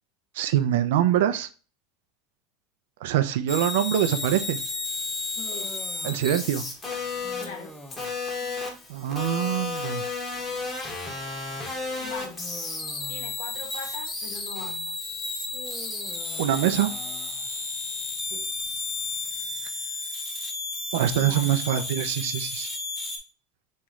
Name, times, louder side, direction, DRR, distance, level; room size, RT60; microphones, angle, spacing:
voice 1, 0.3-1.5 3.0-4.6 6.0-6.6 8.9-10.1 16.4-17.0 20.9-22.7, right 11 dB, 80° right, 0.4 m, -24 dB
sound 1, 3.5-23.2, left 3 dB, 20° left, 1.0 m, -33 dB
Human voice, 4.4-19.6, equal, 5° left, 0.6 m, -47 dB
voice 2, 7.4-7.7 12.0-12.4 13.1-15.0 18.2-18.4 21.1-21.5, left 6 dB, 85° left, 1.2 m, -40 dB
3.1 x 3.0 x 3.6 m
supercardioid pair, 135°, 0 cm